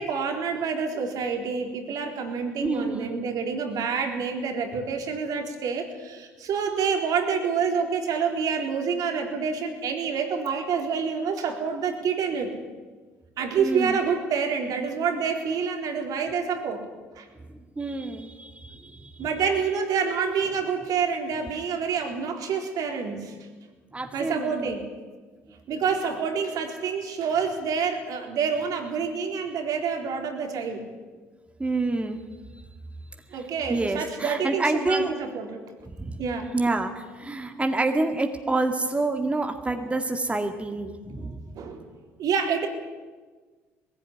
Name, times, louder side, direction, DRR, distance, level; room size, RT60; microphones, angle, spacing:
voice 1, 0.0-12.6 13.4-16.9 17.1-17.3 19.2-23.4 24.1-24.9 25.7-30.9 33.3-35.6 36.2-36.5 41.6-41.9 42.2-42.7, right 6 dB, 60° right, 4 dB, 3.9 m, -27 dB
voice 2, 2.6-3.2 13.6-14.0 17.8-19.1 23.9-24.8 25.5-25.6 31.6-32.2 33.7-35.1 36.0-36.2 36.5-41.4, right 2 dB, 15° right, 5 dB, 2.0 m, -27 dB
20.0 x 16.0 x 9.7 m, 1.4 s
hypercardioid pair, 65°, 7 cm